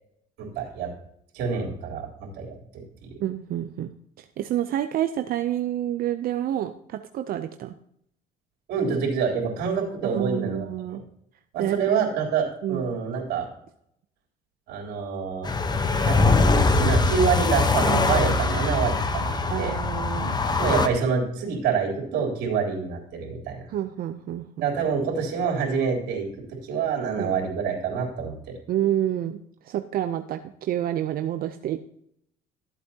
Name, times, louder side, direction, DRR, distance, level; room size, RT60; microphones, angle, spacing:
voice 1, 0.4-0.9 1.3-2.6 3.0-3.1 8.7-10.7 10.9-11.0 11.5-13.5 14.7-15.5 15.9-16.2 16.8-19.8 20.6-23.6 24.6-26.3 26.6-28.3, right 6 dB, 85° right, -1 dB, 3.6 m, -26 dB
voice 2, 3.2-3.9 4.2-7.7 10.0-11.0 11.6-11.8 12.6-12.9 19.5-20.3 23.7-24.7 27.2-27.4 28.7-31.8, right 11 dB, 60° right, 8 dB, 0.6 m, -28 dB
sound 1, 15.4-20.9, left 3 dB, 25° left, 1.0 m, -22 dB
14.0 x 8.2 x 2.9 m, 0.72 s
cardioid pair, 110°, 17 cm